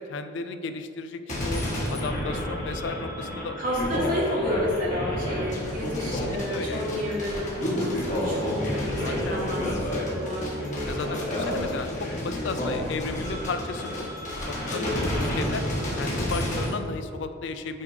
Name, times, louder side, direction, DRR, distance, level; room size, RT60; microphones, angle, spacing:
voice 1, 0.0-3.6 4.3-4.5 6.0-6.8 9.0-9.5 10.9-14.1 14.3-15.7 16.0-17.8, left 4 dB, 65° left, 9 dB, 0.4 m, -34 dB
sound 1, 1.3-16.7, left 1 dB, 40° left, 1.5 m, -30 dB
voice 2, 3.6-11.7 14.7-14.9, equal, 45° right, -5 dB, 1.3 m, -31 dB
8.3 x 3.4 x 4.9 m, 2.6 s
head